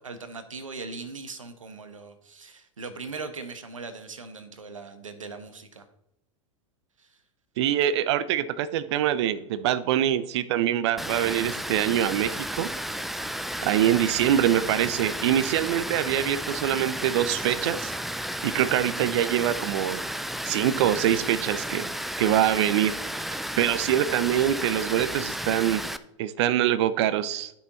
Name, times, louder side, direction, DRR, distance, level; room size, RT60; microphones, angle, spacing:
voice 1, 0.0-5.8 7.0-7.1, right 4 dB, 85° right, 9 dB, 1.1 m, -39 dB
voice 2, 7.6-12.7 13.6-20.0 20.5-21.9 22.2-23.0 23.3-25.8 26.2-27.5, right 11 dB, 60° right, 15 dB, 0.7 m, -24 dB
Water, 11.0-26.0, equal, ahead, 0.4 m, -33 dB
11.0 x 5.8 x 4.1 m, 0.82 s
hypercardioid pair, 95°, 16 cm